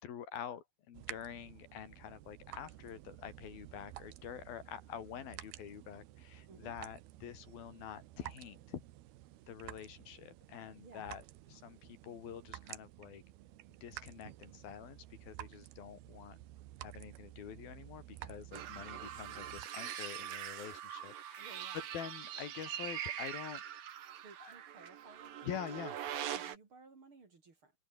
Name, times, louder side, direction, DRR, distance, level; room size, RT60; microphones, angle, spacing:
voice 1, 0.0-8.8 9.5-11.2 11.5-13.2 13.8-16.4 16.8-23.6 24.4-24.5 25.4-26.0, left 9 dB, 70° left, 4.0 m, -47 dB
sound 1, 0.9-19.7, right 15 dB, 80° right, 3.1 m, -52 dB
voice 2, 10.8-11.1 18.6-18.7 21.4-21.8 24.2-25.5 26.3-27.7, right 4 dB, 35° right, 3.5 m, -58 dB
sound 2, 18.5-26.6, right 10 dB, 65° right, 3.5 m, -43 dB
omnidirectional pair, 4.4 m